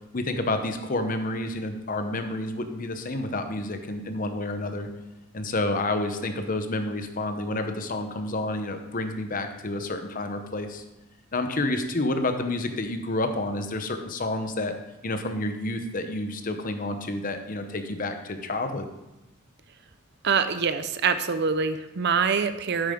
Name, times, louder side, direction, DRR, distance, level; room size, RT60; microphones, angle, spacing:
voice 1, 0.1-4.9 5.3-10.8 11.3-14.7 15.0-18.9, left 2 dB, 40° left, 7 dB, 0.9 m, -29 dB
voice 2, 20.2-22.9, right 6 dB, 55° right, 11 dB, 0.6 m, -25 dB
9.0 x 9.0 x 3.7 m, 0.96 s
head